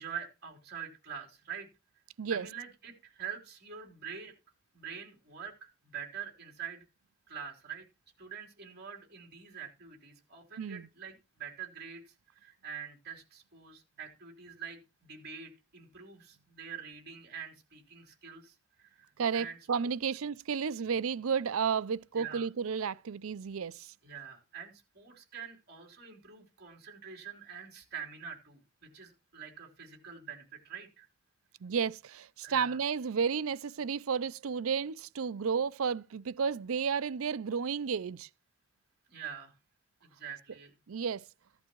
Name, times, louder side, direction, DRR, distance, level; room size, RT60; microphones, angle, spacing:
voice 1, 0.0-1.7 2.3-4.3 4.7-6.8 7.3-7.9 8.2-19.6 22.1-22.5 24.0-31.1 32.4-32.8 39.1-39.6 40.0-40.7, right 7 dB, 50° right, 3.7 m, -45 dB
voice 2, 19.2-23.9 31.6-38.3 40.9-41.2, right 6 dB, 80° right, 0.5 m, -32 dB
15.0 x 11.5 x 3.1 m
head